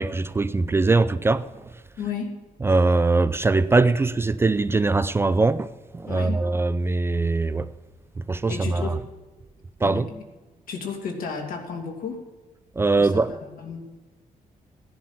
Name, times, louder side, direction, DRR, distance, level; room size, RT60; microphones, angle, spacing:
voice 1, 0.0-1.5 2.6-7.7 8.3-8.9 9.8-10.1 12.8-13.3, right 3 dB, 15° right, 0.4 m, -21 dB
voice 2, 2.0-2.3 6.1-6.4 8.5-9.0 9.8-10.2 10.7-12.2 13.0-13.9, left 5 dB, 75° left, 2.6 m, -33 dB
16.5 x 10.5 x 5.7 m
cardioid pair, 145°, 14 cm